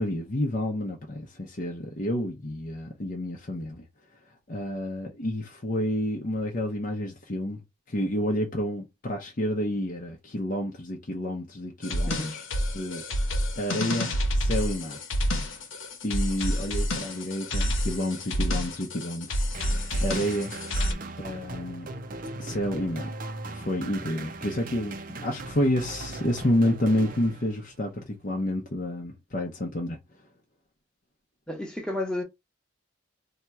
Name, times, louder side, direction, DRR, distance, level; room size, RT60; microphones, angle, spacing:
voice 1, 0.0-3.8 4.5-7.6 7.9-12.4 12.7-13.0 13.6-15.0 16.0-19.4 20.0-20.5 21.2-21.9 22.4-23.1 23.5-30.0, left 1 dB, 40° left, 0.7 m, -29 dB
sound 1, 11.8-20.9, equal, 80° left, 1.0 m, -28 dB
sound 2, 19.5-27.9, right 2 dB, 45° right, 0.5 m, -39 dB
voice 2, 31.5-32.2, left 1 dB, 5° left, 0.9 m, -31 dB
2.9 x 2.3 x 4.2 m
head